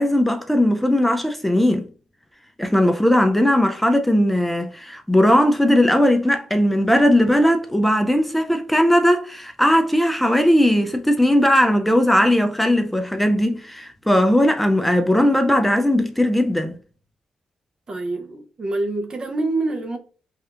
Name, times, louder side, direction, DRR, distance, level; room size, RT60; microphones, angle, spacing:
voice 1, 0.0-1.9 2.6-16.8, left 1 dB, 5° left, 0.4 m, -18 dB
voice 2, 17.9-20.0, right 2 dB, 40° right, 0.6 m, -26 dB
3.2 x 2.8 x 2.4 m
cardioid pair, 95°, 2 cm